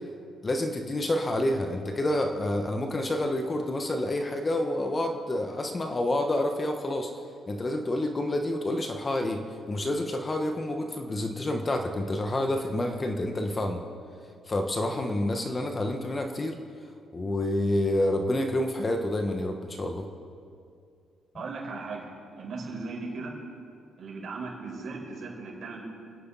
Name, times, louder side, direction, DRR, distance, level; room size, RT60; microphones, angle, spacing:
voice 1, 0.4-7.1 7.5-13.8 14.5-16.5 17.1-20.1, left 1 dB, 30° left, 4 dB, 1.4 m, -28 dB
voice 2, 21.3-22.1 22.4-23.4 24.0-25.8, right 3 dB, 55° right, -2 dB, 5.0 m, -37 dB
28.5 x 9.9 x 4.2 m, 2.4 s
cardioid pair, 90°, 0 cm